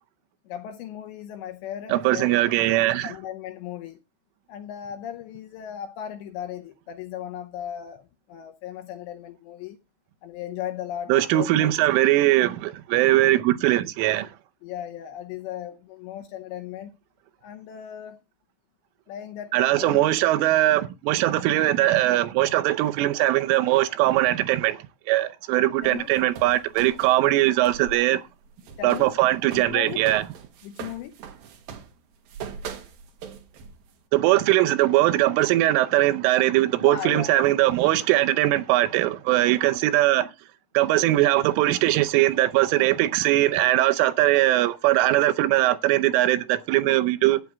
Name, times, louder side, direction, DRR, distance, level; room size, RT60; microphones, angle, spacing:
voice 1, 0.5-2.6 3.0-4.0 4.5-9.8 10.2-11.8 14.6-16.9 17.4-18.2 19.1-20.1 25.8-26.1 28.8-29.1 29.5-30.1 30.6-31.2 36.8-37.4, left 10 dB, 80° left, 2.6 m, -36 dB
voice 2, 1.9-3.1 11.1-14.3 19.5-28.2 28.8-30.2 34.1-40.3 40.7-47.4, right 15 dB, 80° right, 3.2 m, -21 dB
sound 1, 25.8-28.0 28.3-33.9, right 7 dB, 65° right, 2.6 m, -41 dB
14.0 x 9.7 x 3.5 m
omnidirectional pair, 5.9 m